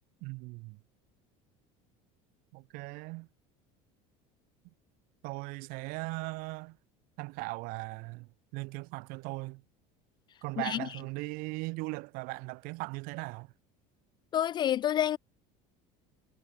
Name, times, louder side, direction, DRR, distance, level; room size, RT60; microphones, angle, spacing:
voice 1, 0.2-0.8 2.5-3.3 5.2-6.8 7.2-9.6 10.4-13.5, right 26 dB, 60° right, 5.7 m, -38 dB
voice 2, 14.3-15.2, left 11 dB, 25° left, 0.4 m, -28 dB
cardioid pair, 160°, 16 cm